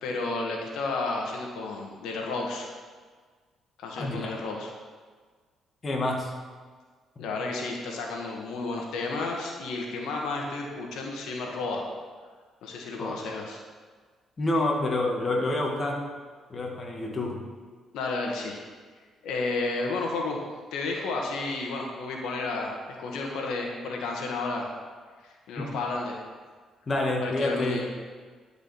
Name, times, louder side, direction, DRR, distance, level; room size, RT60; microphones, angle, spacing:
voice 1, 0.0-2.7 3.8-4.7 7.2-11.8 12.6-13.6 17.9-18.6 19.2-20.4 20.7-24.7 25.2-26.2 27.2-27.9, left 3 dB, 85° left, 0 dB, 1.5 m, -32 dB
voice 2, 4.0-4.3 5.8-6.3 7.2-7.3 13.0-13.2 14.4-16.0 16.5-17.5 25.6-25.7 26.9-27.9, left 2 dB, 35° left, 0 dB, 1.9 m, -28 dB
11.0 x 5.0 x 7.0 m, 1.5 s
cardioid pair, 90°, 0 cm